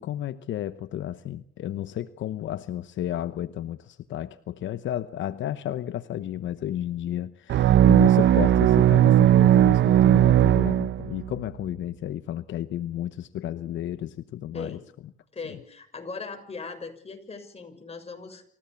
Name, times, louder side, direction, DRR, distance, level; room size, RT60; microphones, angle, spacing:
voice 1, 0.0-14.8, left 11 dB, 70° left, 12 dB, 0.9 m, -32 dB
sound 1, 7.5-11.3, right 11 dB, 70° right, 0.8 m, -17 dB
voice 2, 14.5-14.9 15.3-18.4, left 4 dB, 30° left, 4 dB, 6.5 m, -39 dB
28.0 x 16.0 x 7.0 m, 0.63 s
cardioid pair, 90°, 20 cm